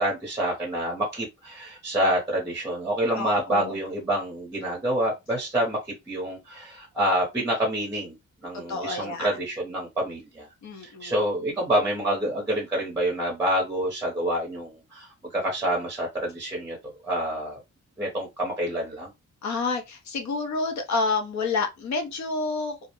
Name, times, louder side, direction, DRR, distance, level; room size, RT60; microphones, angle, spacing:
voice 1, 0.0-5.8 6.1-8.1 8.4-10.5 10.8-16.8 17.0-17.6 18.0-19.1, right 1 dB, 10° right, 0.6 m, -27 dB
voice 2, 3.2-3.7 8.7-9.3 10.6-11.2 19.4-22.7, left 4 dB, 65° left, 0.7 m, -29 dB
2.4 x 2.0 x 2.8 m
wide cardioid pair, 170°, 30 cm